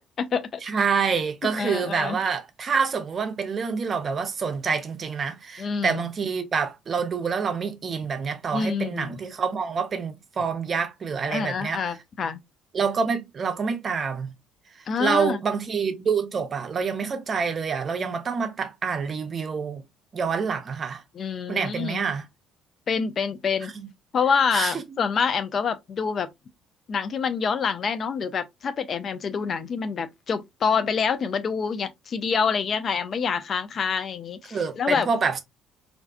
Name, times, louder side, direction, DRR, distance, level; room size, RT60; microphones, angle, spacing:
voice 1, 0.0-0.9 1.4-2.2 5.6-6.0 8.5-9.1 11.3-12.4 14.9-15.4 21.2-22.0 22.9-23.7 24.1-26.3 26.9-35.1, left 6 dB, 45° left, 0.3 m, -27 dB
voice 2, 0.6-11.8 12.7-14.3 15.0-19.8 20.1-21.0 21.5-22.3 23.8-23.9 24.5-24.7 34.5-35.4, right 5 dB, 40° right, 0.5 m, -27 dB
2.5 x 2.3 x 2.2 m
hypercardioid pair, 55°, 0 cm